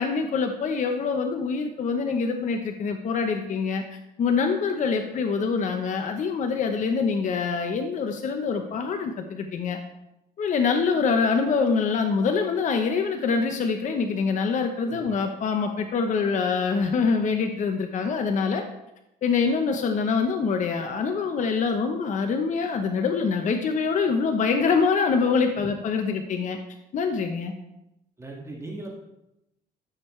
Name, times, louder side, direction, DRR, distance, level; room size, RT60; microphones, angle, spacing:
voice 1, 0.0-3.8 4.2-9.8 10.4-18.6 19.2-26.6 26.9-27.5, left 5 dB, 45° left, 5 dB, 0.9 m, -25 dB
voice 2, 28.2-28.9, right 2 dB, 15° right, -2 dB, 2.0 m, -38 dB
13.5 x 6.5 x 3.2 m, 0.89 s
cardioid pair, 110°, 17 cm